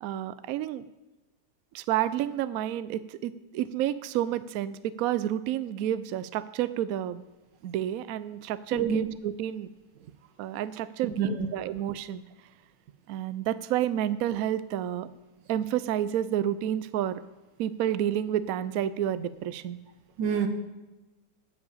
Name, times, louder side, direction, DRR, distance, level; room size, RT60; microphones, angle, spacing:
voice 1, 0.0-0.8 1.7-7.2 7.6-9.7 10.4-12.2 13.1-15.1 15.5-17.2 17.6-19.8, right 11 dB, 70° right, 14 dB, 0.8 m, -30 dB
voice 2, 8.7-9.0 11.0-11.3 20.2-20.5, right 8 dB, 85° right, 8 dB, 1.7 m, -26 dB
9.5 x 7.4 x 8.4 m, 1.1 s
omnidirectional pair, 1.9 m